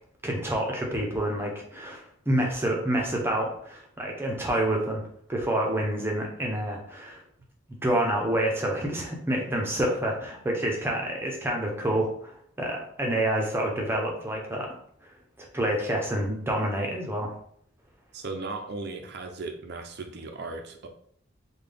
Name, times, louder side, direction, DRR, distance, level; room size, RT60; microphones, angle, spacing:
voice 1, 0.2-5.0 5.3-7.2 7.8-12.3 12.6-14.7 15.4-17.3, right 1 dB, 10° right, -1 dB, 0.7 m, -28 dB
voice 2, 18.1-20.9, right 3 dB, 55° right, 5 dB, 0.5 m, -36 dB
3.8 x 2.3 x 3.4 m, 0.65 s
head